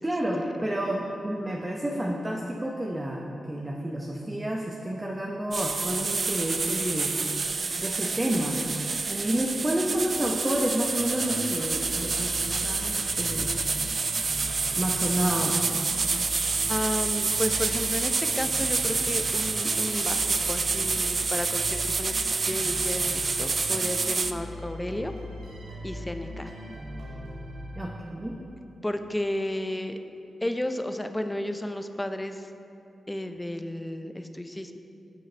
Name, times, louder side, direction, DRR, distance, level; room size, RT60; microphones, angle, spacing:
voice 1, 0.0-7.1 7.8-8.6 9.1-13.5 14.8-15.7 27.8-28.3, right 1 dB, 20° right, -1 dB, 0.8 m, -30 dB
sound 1, 5.5-24.3, right 4 dB, 50° right, 0.4 m, -28 dB
sound 2, 10.8-28.4, equal, 90° right, 1.7 m, -40 dB
voice 2, 16.7-25.1 25.8-26.5 28.8-30.0 30.4-32.5 33.1-34.8, left 1 dB, 15° left, 7 dB, 0.6 m, -32 dB
10.0 x 6.3 x 3.3 m, 2.7 s
cardioid pair, 50°, 0 cm